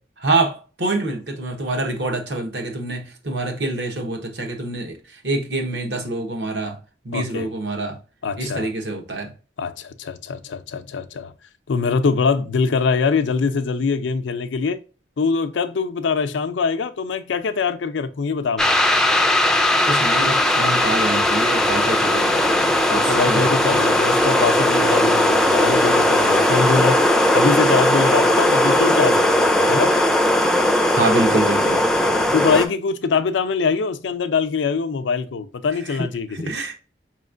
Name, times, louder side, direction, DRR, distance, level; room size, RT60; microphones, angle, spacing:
voice 1, 0.2-6.8 7.0-8.0 8.4-9.3 19.8-23.8 30.9-31.8 35.9-36.0 36.3-36.7, right 2 dB, 75° right, 1.0 m, -26 dB
voice 2, 7.1-7.5 8.2-8.7 9.6-11.3 11.7-14.8 15.2-18.8 22.9-27.1 27.3-29.9 32.0-36.5, left 5 dB, 85° left, 0.5 m, -23 dB
sound 1, 18.6-32.7, left 1 dB, 5° left, 0.3 m, -18 dB
5.0 x 3.1 x 2.5 m
head